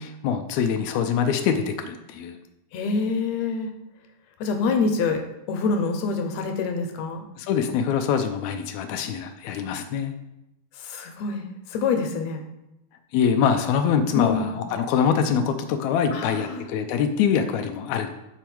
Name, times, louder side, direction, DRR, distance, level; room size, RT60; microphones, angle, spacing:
voice 1, 0.0-2.4 7.4-10.1 13.1-18.1, left 7 dB, 90° left, 5 dB, 1.6 m, -24 dB
voice 2, 2.7-3.7 4.4-7.2 10.7-12.4 14.1-14.6 16.1-16.7, left 4 dB, 70° left, 5 dB, 1.7 m, -26 dB
8.8 x 4.6 x 4.5 m, 0.91 s
omnidirectional pair, 4.0 m